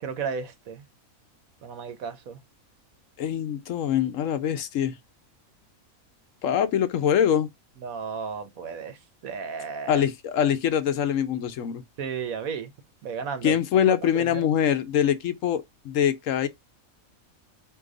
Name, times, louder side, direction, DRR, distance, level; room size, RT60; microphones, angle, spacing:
voice 1, 0.0-0.8 1.6-2.4 7.8-9.0 9.2-10.0 12.0-12.7 13.0-13.6 13.9-14.5, right 6 dB, 80° right, 1.4 m, -33 dB
voice 2, 3.2-4.9 6.4-7.5 9.9-11.8 13.4-16.5, left 9 dB, 70° left, 1.0 m, -24 dB
4.6 x 2.8 x 3.8 m
omnidirectional pair, 1.4 m